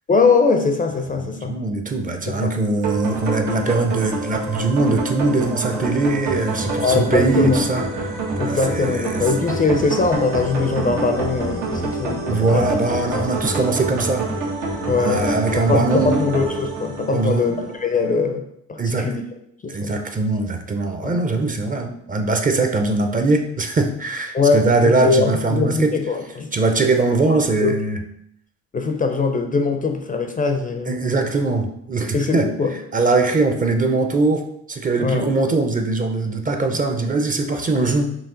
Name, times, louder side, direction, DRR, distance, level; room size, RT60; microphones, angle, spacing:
voice 1, 0.1-1.5 2.3-2.5 6.8-7.6 8.4-12.7 14.9-19.2 19.6-20.0 21.0-21.2 24.3-26.5 27.3-27.7 28.7-31.0 32.1-32.7 35.0-35.3, left 4 dB, 25° left, 5 dB, 0.4 m, -21 dB
voice 2, 1.2-8.2 8.4-9.2 12.3-14.3 15.0-16.3 17.1-17.7 18.8-19.2 19.7-25.9 26.5-28.0 30.9-32.5 32.9-38.1, right 3 dB, 25° right, 5 dB, 0.6 m, -21 dB
sound 1, 2.8-17.9, right 2 dB, 90° right, 1.5 m, -26 dB
5.7 x 2.4 x 3.8 m, 0.74 s
cardioid pair, 90°, 30 cm